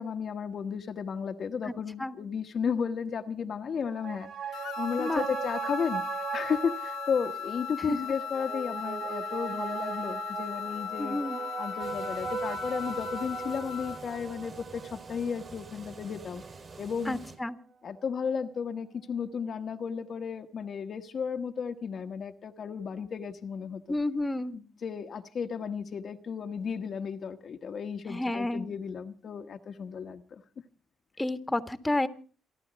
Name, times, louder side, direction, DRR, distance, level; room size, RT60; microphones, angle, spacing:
voice 1, 0.0-6.0 6.3-11.2 11.6-16.4 16.8-17.2 17.8-24.0 24.5-30.4, left 6 dB, 55° left, 1.2 m, -34 dB
sound 1, 3.7-16.6 16.9-17.0, right 7 dB, 60° right, 1.2 m, -38 dB
sound 2, 4.5-14.1, left 9 dB, 85° left, 1.1 m, -38 dB
voice 2, 11.0-11.4 17.1-17.6 23.9-24.5 28.1-28.7 31.2-32.1, left 1 dB, 15° left, 1.5 m, -30 dB
sound 3, 11.8-17.4, right 4 dB, 40° right, 5.8 m, -48 dB
28.0 x 11.5 x 4.0 m
cardioid pair, 90°, 0 cm